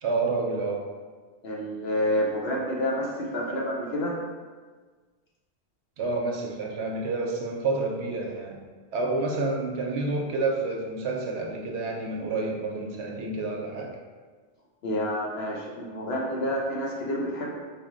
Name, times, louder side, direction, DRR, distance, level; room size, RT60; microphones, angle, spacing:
voice 1, 0.0-0.8 6.0-8.6 8.9-14.0, right 3 dB, 70° right, 0 dB, 0.8 m, -29 dB
voice 2, 1.4-4.2 14.8-17.6, equal, 60° left, -2 dB, 0.8 m, -29 dB
4.1 x 2.1 x 3.7 m, 1.4 s
omnidirectional pair, 1.3 m